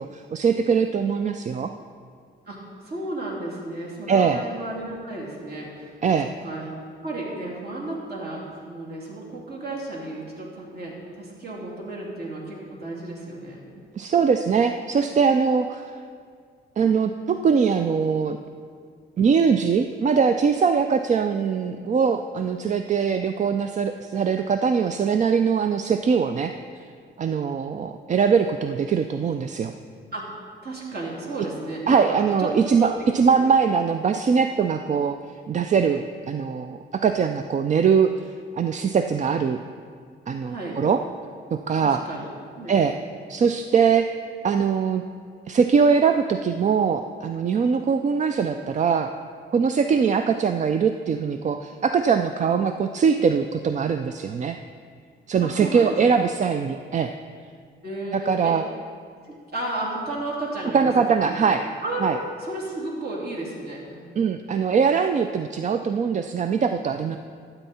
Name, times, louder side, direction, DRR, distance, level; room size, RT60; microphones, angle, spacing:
voice 1, 0.0-1.7 4.1-4.4 6.0-6.3 14.0-15.9 16.8-18.4 19.2-26.5 27.2-29.7 31.9-35.2 35.5-38.2 38.5-39.6 40.3-41.0 41.5-42.0 42.7-42.9 43.3-44.1 44.4-45.0 45.5-49.1 49.5-54.6 55.3-57.1 58.1-58.6 60.7-61.6 62.0-62.2 64.2-67.2, right 6 dB, 40° right, 8 dB, 0.4 m, -22 dB
voice 2, 2.5-5.9 6.4-6.7 7.0-13.6 30.1-30.3 30.6-32.9 33.2-33.5 40.5-40.8 41.8-42.3 42.5-43.0 55.4-56.3 57.8-58.5 59.3-60.9 61.3-61.4 61.8-62.1 62.4-64.0, right 2 dB, 55° right, -4 dB, 3.0 m, -33 dB
13.0 x 8.0 x 4.3 m, 2.1 s
cardioid pair, 90°, 20 cm